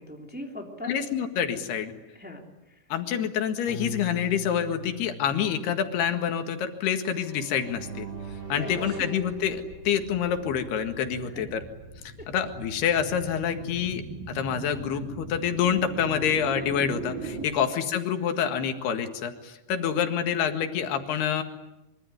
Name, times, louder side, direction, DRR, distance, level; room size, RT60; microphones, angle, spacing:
voice 1, 0.0-1.0 2.1-2.8 8.5-9.0 11.2-11.6 12.2-12.3 17.7-17.8 19.7-20.0, left 1 dB, 5° right, 2 dB, 2.8 m, -41 dB
voice 2, 0.9-1.9 2.9-8.1 8.5-11.6 12.3-21.4, left 8 dB, 85° left, 7 dB, 3.9 m, -27 dB
Piano, 3.7-6.6, left 2 dB, 60° left, 7.9 m, -40 dB
sound 1, 7.1-10.1, right 4 dB, 30° right, 4.9 m, -40 dB
sound 2, 8.7-17.5, right 3 dB, 45° right, 5.1 m, -41 dB
25.0 x 24.5 x 9.6 m, 0.93 s
omnidirectional pair, 4.5 m